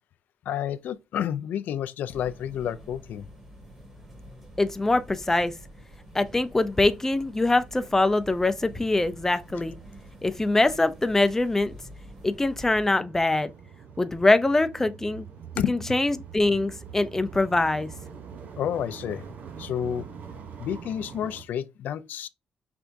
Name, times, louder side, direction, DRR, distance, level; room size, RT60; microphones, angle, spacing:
voice 1, 0.5-3.3 15.6-16.0 18.6-19.2 19.6-20.1 20.6-22.3, left 9 dB, 85° left, 0.4 m, -30 dB
sound 1, 2.1-12.9, equal, 15° right, 2.0 m, -48 dB
sound 2, 2.1-21.4, right 6 dB, 70° right, 0.7 m, -46 dB
voice 2, 4.6-5.5 6.1-9.8 10.2-11.7 12.2-13.5 14.0-15.3 15.6-17.9, left 2 dB, 15° left, 0.5 m, -23 dB
5.8 x 3.4 x 2.6 m
cardioid pair, 120°, 3 cm